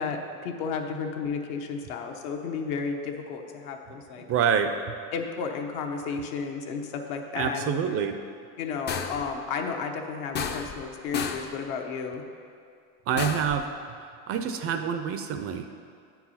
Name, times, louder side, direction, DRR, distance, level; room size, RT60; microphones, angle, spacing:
voice 1, 0.0-4.2 5.1-7.7 8.6-12.2, left 5 dB, 75° left, 3 dB, 1.1 m, -33 dB
voice 2, 4.2-4.8 7.4-8.2 13.1-13.7 14.3-15.7, right 7 dB, 35° right, 7 dB, 0.4 m, -27 dB
sound 1, 8.9-9.3 10.4-10.9 11.1-11.5 13.2-13.6, left 6 dB, 25° left, 0.4 m, -32 dB
9.0 x 4.7 x 5.6 m, 2.3 s
supercardioid pair, 125°, 42 cm